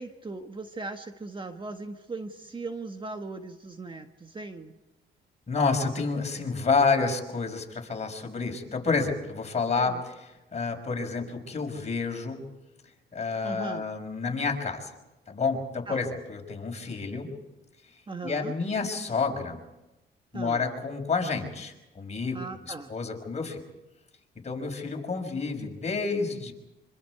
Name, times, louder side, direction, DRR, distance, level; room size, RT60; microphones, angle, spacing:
voice 1, 0.0-4.7 9.7-10.0 13.4-13.9 15.9-16.0 18.1-18.5 20.3-20.6 22.3-22.9, right 3 dB, 25° right, 6 dB, 1.6 m, -38 dB
voice 2, 5.5-10.1 10.5-12.4 13.1-14.9 15.3-17.3 18.2-19.6 20.3-22.4 22.7-23.6 24.4-26.5, left 4 dB, 35° left, 2 dB, 5.7 m, -29 dB
26.0 x 26.0 x 4.8 m, 0.99 s
cardioid pair, 90°, 20 cm